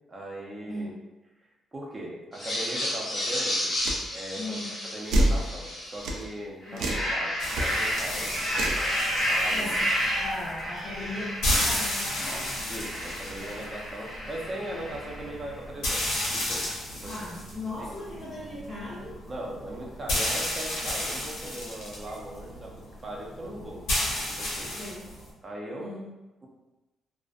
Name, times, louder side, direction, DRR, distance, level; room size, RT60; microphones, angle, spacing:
voice 1, 0.1-1.0 1.7-3.7 4.1-8.3 9.2-9.7 12.7-17.1 17.8-17.9 19.3-22.7 23.0-23.8 24.4-24.7 25.4-26.1, right 1 dB, 25° right, -2 dB, 0.5 m, -39 dB
sound 1, 2.3-6.2 6.6-15.3, equal, 35° left, 1.0 m, -31 dB
sound 2, 3.8-4.0 5.1-5.4 6.0-6.2 6.8-7.1 7.5-7.6 8.5-8.8, right 1 dB, 90° right, 0.3 m, -25 dB
voice 2, 4.4-4.7 6.7-6.9 9.5-12.5 13.4-13.6 17.0-19.2 24.7-25.1 25.8-26.1, left 1 dB, 15° left, -11 dB, 0.6 m, -38 dB
sound 3, 7.4-25.3, left 1 dB, 90° left, 0.9 m, -33 dB
2.4 x 2.1 x 2.4 m, 1.0 s
cardioid pair, 130°, 0 cm